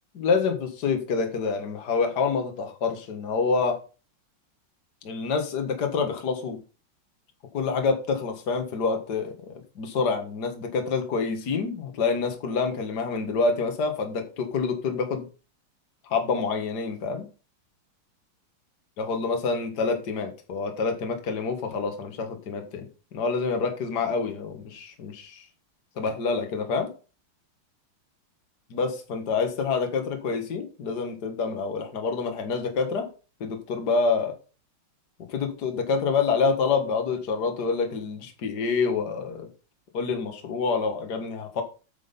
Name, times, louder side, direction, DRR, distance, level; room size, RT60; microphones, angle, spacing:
voice 1, 0.1-3.8 5.0-6.6 7.5-9.3 9.8-15.2 16.1-17.3 19.0-22.9 23.1-25.4 26.0-26.9 28.7-33.1 33.4-34.3 35.3-39.5 39.9-41.6, left 4 dB, 55° left, 5 dB, 2.1 m, -27 dB
9.4 x 6.3 x 5.4 m, 0.35 s
omnidirectional pair, 2.3 m